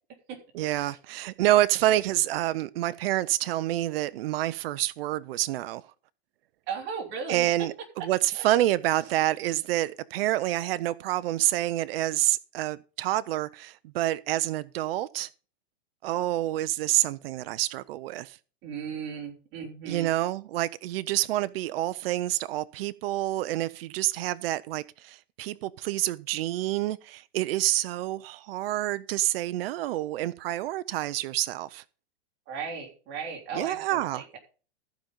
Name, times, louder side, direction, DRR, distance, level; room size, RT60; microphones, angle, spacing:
voice 1, 0.5-5.8 7.3-15.3 16.0-18.4 19.9-31.8 33.5-34.2, right 14 dB, 65° right, 0.6 m, -28 dB
voice 2, 6.7-7.5 8.3-8.5 18.6-20.1 32.5-34.4, right 6 dB, 35° right, 3.1 m, -36 dB
14.5 x 5.2 x 5.4 m
hypercardioid pair, 140°, 32 cm